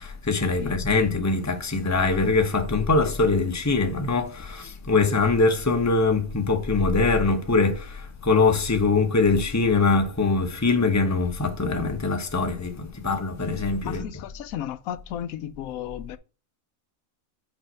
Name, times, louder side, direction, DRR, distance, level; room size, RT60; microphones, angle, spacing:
voice 1, 0.0-14.2, left 3 dB, 15° left, 0.8 m, -23 dB
voice 2, 13.8-16.2, left 11 dB, 85° left, 1.1 m, -34 dB
5.5 x 4.6 x 5.5 m
omnidirectional pair, 1.4 m